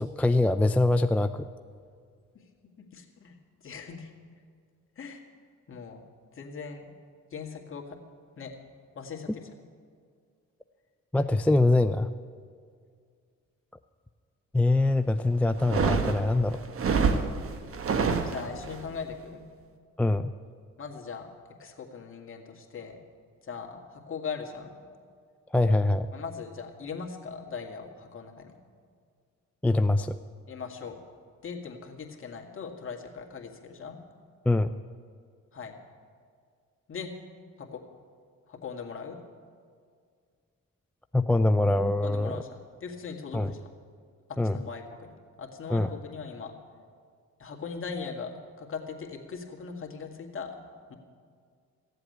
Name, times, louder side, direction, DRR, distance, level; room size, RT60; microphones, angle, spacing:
voice 1, 0.0-1.5 11.1-12.1 14.5-16.6 20.0-20.3 25.5-26.1 29.6-30.2 34.5-34.7 41.1-42.3 43.3-43.5 44.4-44.6 45.7-45.9, left 2 dB, 5° left, 10 dB, 0.3 m, -23 dB
voice 2, 2.8-4.1 5.0-5.2 5.7-6.0 6.3-6.9 7.3-8.0 8.4-8.5 8.9-9.5 18.2-19.5 20.8-21.3 21.6-23.0 23.4-24.8 26.1-28.5 30.5-31.0 31.4-34.0 35.5-35.8 36.9-37.1 37.6-37.8 38.5-39.2 42.0-43.7 44.3-46.5 47.4-50.6 50.9-51.0, left 5 dB, 45° left, 2 dB, 2.0 m, -40 dB
sound 1, 15.6-18.8, right 5 dB, 45° right, 1.2 m, -27 dB
15.0 x 7.8 x 9.3 m, 2.1 s
cardioid pair, 90°, 30 cm